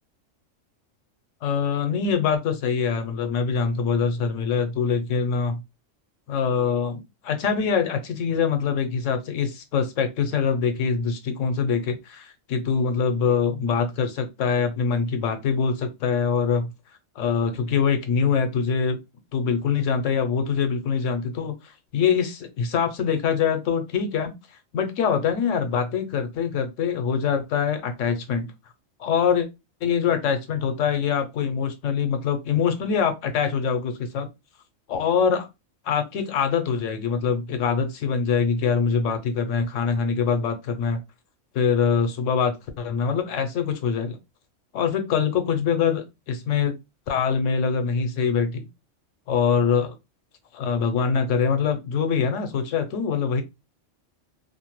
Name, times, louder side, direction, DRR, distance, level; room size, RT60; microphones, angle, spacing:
voice 1, 1.4-5.6 6.3-16.7 17.2-19.0 19.3-24.3 24.7-28.5 29.0-29.5 29.8-34.3 34.9-35.5 35.8-41.0 41.5-44.2 44.7-46.8 47.1-48.7 49.3-49.9 50.5-53.4, left 6 dB, 80° left, 8 dB, 1.0 m, -24 dB
2.5 x 2.1 x 2.9 m, 0.23 s
omnidirectional pair, 1.3 m